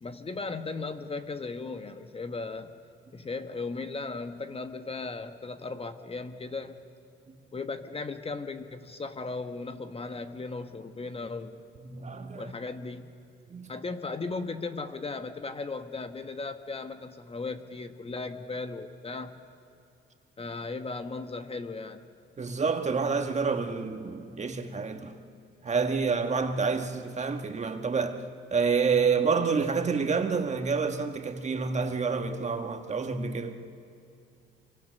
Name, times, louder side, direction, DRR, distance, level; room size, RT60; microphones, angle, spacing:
voice 1, 0.0-2.7 3.1-6.8 7.5-11.6 12.4-13.1 13.7-19.4 20.4-22.1, left 3 dB, 30° left, 1.2 m, -36 dB
voice 2, 11.8-12.5 13.5-13.7 22.4-25.2 25.6-28.2 28.5-33.6, right 5 dB, 35° right, 1.7 m, -28 dB
27.0 x 24.0 x 6.6 m
cardioid pair, 90°, 20 cm